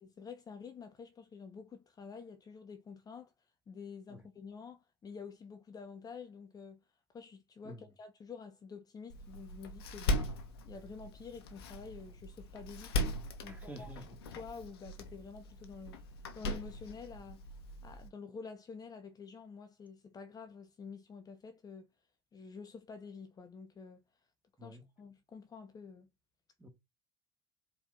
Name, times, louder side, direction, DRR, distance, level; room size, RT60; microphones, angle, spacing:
voice 1, 0.0-3.3 3.7-6.8 7.1-10.3 10.6-13.0 13.4-13.9 14.4-16.0 16.3-17.5 17.8-21.9 22.3-24.0 24.6-26.1, left 5 dB, 30° left, 0.8 m, -49 dB
Door, 9.1-18.1, left 1 dB, 75° left, 0.9 m, -39 dB
voice 2, 13.5-14.0 24.6-24.8 26.6-26.7, equal, 10° right, 1.6 m, -49 dB
4.5 x 3.1 x 3.8 m
figure-of-eight pair, 65°, 13 cm